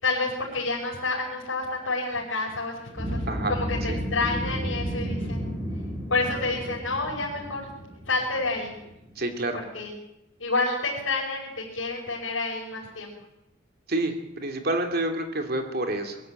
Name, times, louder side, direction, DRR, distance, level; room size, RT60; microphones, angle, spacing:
voice 1, 0.0-3.2 3.5-5.5 6.1-7.6 8.1-8.8 9.7-9.9 10.4-13.1, left 3 dB, 85° left, -5 dB, 5.7 m, -29 dB
sound 1, 2.9-9.2, equal, 25° right, 7.9 m, -32 dB
voice 2, 9.2-9.6 13.9-16.2, right 2 dB, 50° right, 5 dB, 2.9 m, -28 dB
23.0 x 14.0 x 9.1 m, 0.89 s
head